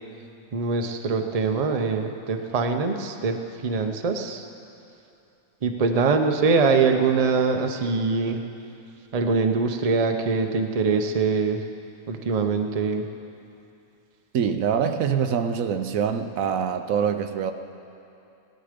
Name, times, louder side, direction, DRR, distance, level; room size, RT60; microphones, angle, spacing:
voice 1, 0.5-3.3 3.6-4.4 5.6-8.4 9.1-11.6 12.1-13.0, right 4 dB, 35° right, 5 dB, 0.7 m, -23 dB
voice 2, 14.3-17.5, right 7 dB, 80° right, 8 dB, 1.1 m, -24 dB
17.0 x 12.0 x 5.1 m, 2.7 s
omnidirectional pair, 1.4 m